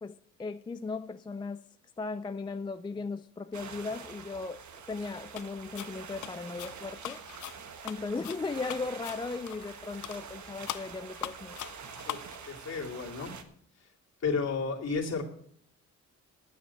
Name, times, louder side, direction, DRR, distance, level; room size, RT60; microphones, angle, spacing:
voice 1, 0.0-1.6 2.0-7.2 7.8-11.6, left 4 dB, 15° left, 0.4 m, -37 dB
sound 1, 3.5-13.4, right 6 dB, 70° right, 1.3 m, -46 dB
sound 2, 5.3-5.5 5.8-9.8 10.0-10.2 10.7-12.4, left 14 dB, 85° left, 0.5 m, -41 dB
voice 2, 12.4-13.3 14.2-15.2, left 4 dB, 60° left, 2.6 m, -32 dB
10.0 x 9.1 x 6.8 m
wide cardioid pair, 130°, 30 cm